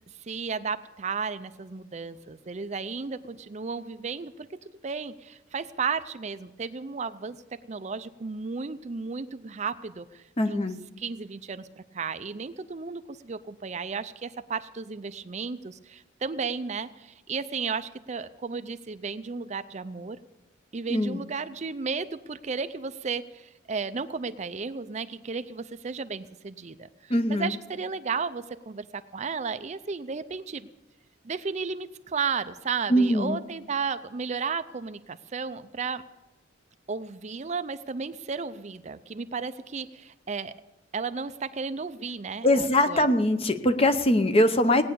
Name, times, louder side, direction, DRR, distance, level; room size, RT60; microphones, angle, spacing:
voice 1, 0.2-4.5 4.8-7.4 7.6-20.2 20.7-26.8 27.0-30.7 31.2-36.0 36.9-40.5 40.9-43.1, right 5 dB, 35° right, 12 dB, 0.5 m, -34 dB
voice 2, 10.4-10.8 20.9-21.2 27.1-27.5 32.9-33.4 42.4-44.8, left 1 dB, 30° left, 9 dB, 0.8 m, -22 dB
18.0 x 9.5 x 6.8 m, 1.0 s
head